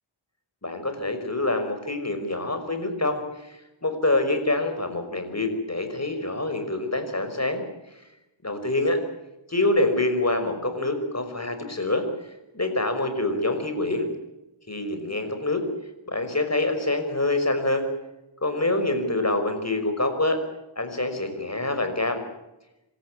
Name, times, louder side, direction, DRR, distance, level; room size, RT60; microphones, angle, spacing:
voice 1, 0.6-7.6 8.4-9.0 9.5-12.1 12.5-14.1 14.7-15.6 16.1-17.9 18.4-20.4 20.8-22.2, left 2 dB, 30° left, 7 dB, 5.6 m, -26 dB
27.5 x 14.0 x 9.8 m, 0.96 s
wide cardioid pair, 70°, 48 cm